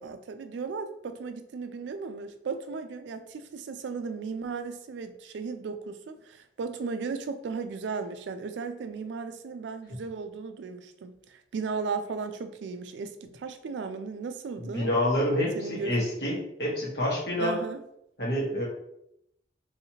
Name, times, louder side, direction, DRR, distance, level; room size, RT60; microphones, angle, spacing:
voice 1, 0.0-14.9 15.5-15.9 17.4-17.8, right 5 dB, 85° right, 9 dB, 0.3 m, -36 dB
voice 2, 14.6-17.6 18.2-18.6, left 1 dB, 70° left, -5 dB, 1.2 m, -27 dB
3.1 x 2.9 x 2.8 m, 0.81 s
head